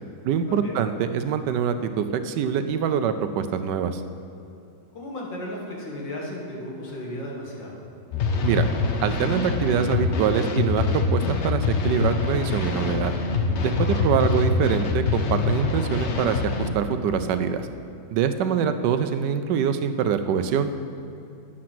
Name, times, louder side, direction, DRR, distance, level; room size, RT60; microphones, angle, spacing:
voice 1, 0.2-4.0 8.4-8.7 9.0-13.1 13.6-17.7 18.1-20.7, right 7 dB, 75° right, 9 dB, 1.2 m, -24 dB
voice 2, 4.9-7.8 13.8-14.0 18.4-18.7, left 1 dB, 80° left, -2 dB, 2.5 m, -35 dB
sound 1, 8.1-16.7, left 4 dB, 55° left, 0.8 m, -24 dB
9.9 x 7.5 x 5.9 m, 2.7 s
omnidirectional pair, 2.0 m